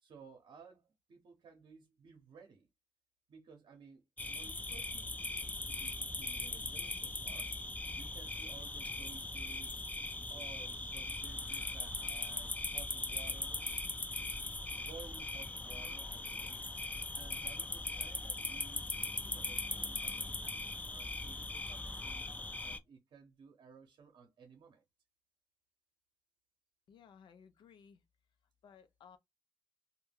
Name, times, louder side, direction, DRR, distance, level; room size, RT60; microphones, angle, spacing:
voice 1, 0.0-2.7 3.3-7.5 8.0-9.8 10.3-13.6 14.1-14.3 14.8-16.6 17.1-22.3 22.6-24.8, right 5 dB, 75° right, 0.8 m, -57 dB
sound 1, 4.2-22.8, left 2 dB, 20° left, 0.4 m, -40 dB
voice 2, 26.9-28.0 28.6-29.2, left 7 dB, 80° left, 0.5 m, -59 dB
2.2 x 2.2 x 3.2 m
cardioid pair, 55°, 8 cm